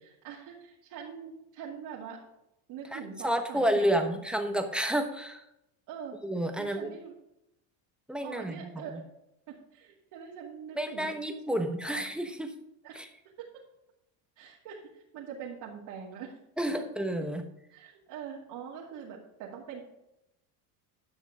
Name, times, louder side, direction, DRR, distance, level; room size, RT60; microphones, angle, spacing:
voice 1, 0.0-2.2 2.7-4.0 5.9-6.2 6.5-7.1 8.2-9.0 9.5-11.1 11.5-12.0 12.8-13.1 13.4-13.5 14.4-16.3 17.7-19.8, right 7 dB, 60° right, -5 dB, 2.5 m, -43 dB
voice 2, 2.9-5.4 6.2-6.9 8.1-9.0 10.7-12.5 12.9-13.1 16.6-17.4, right 1 dB, ahead, 5 dB, 1.0 m, -30 dB
11.0 x 6.4 x 4.9 m, 0.85 s
supercardioid pair, 125°, 46 cm